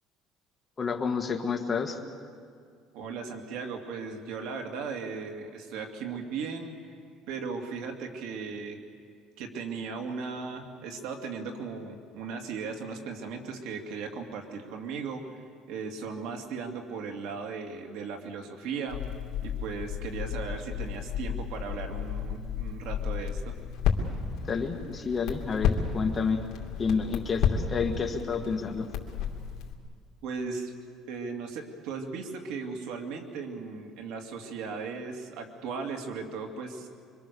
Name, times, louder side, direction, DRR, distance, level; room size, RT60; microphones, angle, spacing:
voice 1, 0.8-2.0 24.5-26.4 26.8-28.9, left 5 dB, 20° left, 3 dB, 1.7 m, -29 dB
voice 2, 2.9-6.7 7.3-8.8 9.4-19.0 19.4-23.5 30.2-30.8 31.1-36.9, right 5 dB, 80° right, 3 dB, 2.7 m, -37 dB
Crackle, 18.9-29.7, left 7 dB, 60° left, 2.8 m, -32 dB
25.5 x 24.5 x 7.0 m, 2.1 s
cardioid pair, 160°, 0 cm